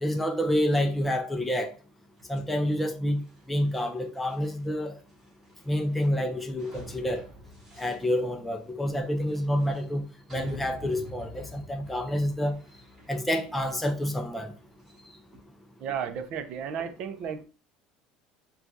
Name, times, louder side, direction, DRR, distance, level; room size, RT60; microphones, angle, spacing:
voice 1, 0.0-1.7 2.3-3.2 3.5-4.9 5.7-7.2 7.8-10.0 10.3-12.6 13.1-14.5, equal, 5° left, 0.4 m, -28 dB
sound 1, 2.2-15.4, left 1 dB, 20° right, 1.9 m, -49 dB
voice 2, 15.8-17.4, right 7 dB, 45° right, 0.5 m, -33 dB
6.0 x 2.3 x 2.6 m
cardioid pair, 160°, 2 cm